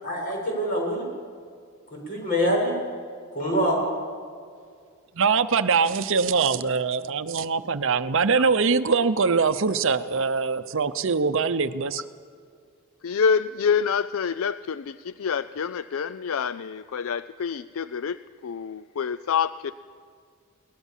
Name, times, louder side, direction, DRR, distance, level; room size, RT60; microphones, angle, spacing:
voice 1, 0.0-1.1 2.1-2.7 3.3-3.8, equal, 40° left, -1 dB, 7.8 m, -25 dB
voice 2, 5.2-12.0, right 5 dB, 60° right, 11 dB, 0.7 m, -23 dB
voice 3, 13.0-18.2 18.4-19.7, left 6 dB, 65° left, 15 dB, 0.4 m, -27 dB
22.0 x 19.0 x 7.4 m, 2.2 s
head